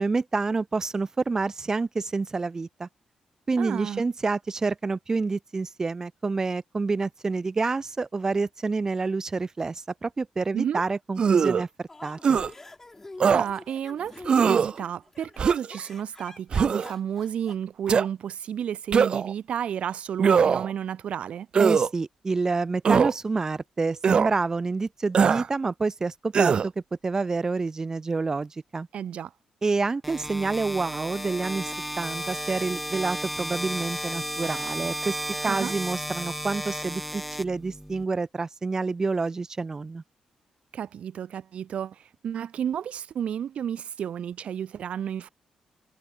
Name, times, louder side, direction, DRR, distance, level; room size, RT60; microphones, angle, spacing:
voice 1, 0.0-2.9 3.5-12.4 21.6-26.7 27.0-28.9 29.6-31.7 32.0-35.2 35.4-40.0, right 4 dB, 25° right, 3.0 m, -28 dB
voice 2, 3.6-4.0 10.5-10.8 13.2-21.5 28.9-29.3 35.4-35.7 40.7-45.3, right 9 dB, 65° right, 1.8 m, -32 dB
sound 1, 11.2-11.6 12.2-12.5 13.2-13.5 14.3-14.7 15.4-15.8 16.5-16.9 17.9-18.1 18.9-19.3 20.2-20.7 21.5-21.9 22.8-23.1 24.0-24.3 25.1-25.5 26.3-26.7, right 6 dB, 45° right, 1.1 m, -21 dB
sound 2, 11.9-17.5, left 2 dB, 15° left, 5.6 m, -45 dB
sound 3, 30.0-38.0, equal, ahead, 3.8 m, -33 dB
cardioid pair, 120°, 2 cm